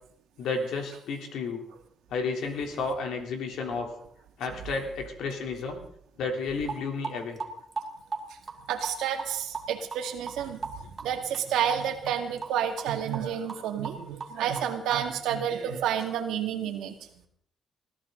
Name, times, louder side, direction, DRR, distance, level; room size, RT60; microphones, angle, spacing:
voice 1, 0.4-1.6 2.1-3.9 4.4-5.8 6.2-7.4, left 4 dB, 80° left, 3 dB, 3.5 m, -32 dB
sound 1, 6.7-6.8 7.0-7.9 8.1-8.9 9.2-9.3 9.5-9.6 9.9-10.0 10.3-10.4 10.6-10.7 11.0-11.1 11.3-11.4 11.7-11.8 12.1-12.5 12.8-12.9 13.1-13.2 13.5-13.6 13.8-14.6 14.9-15.0, right 5 dB, 35° right, 2.6 m, -34 dB
voice 2, 8.7-17.0, right 9 dB, 90° right, 4 dB, 2.2 m, -30 dB
21.0 x 14.5 x 4.0 m, 0.68 s
cardioid pair, 90°, 0 cm